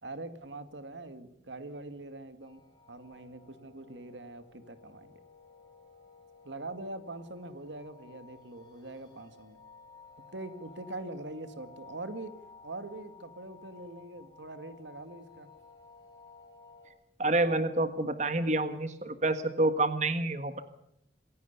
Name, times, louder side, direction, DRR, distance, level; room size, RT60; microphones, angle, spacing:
voice 1, 0.0-2.6 2.9-5.2 6.4-9.6 10.3-12.3 12.6-15.5, right 2 dB, 90° right, 10 dB, 2.3 m, -43 dB
sound 1, 2.4-16.9, left 4 dB, 20° left, 7.8 m, -55 dB
voice 2, 17.2-20.6, right 2 dB, 40° right, 10 dB, 1.5 m, -28 dB
26.5 x 16.5 x 6.9 m, 0.78 s
head